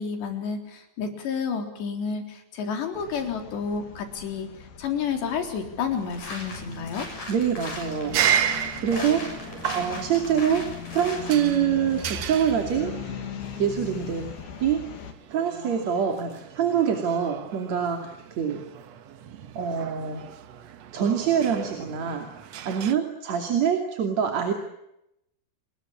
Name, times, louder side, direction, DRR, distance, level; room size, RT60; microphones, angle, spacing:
voice 1, 0.0-4.5 4.8-7.1, left 6 dB, 85° left, 6 dB, 6.0 m, -30 dB
sound 1, 2.9-15.1, left 8 dB, 65° left, 4.2 m, -40 dB
sound 2, 5.9-11.4, left 2 dB, 50° left, 8.5 m, -39 dB
voice 2, 7.3-8.2 8.8-9.2 9.8-10.7 10.9-12.9 13.6-14.3 14.6-14.9 15.3-18.6 19.6-20.3 20.9-22.3 22.7-24.5, right 8 dB, 45° right, 5 dB, 3.5 m, -25 dB
sound 3, 8.0-22.9, right 9 dB, 70° right, 1.6 m, -34 dB
30.0 x 21.0 x 8.7 m, 0.84 s
omnidirectional pair, 4.9 m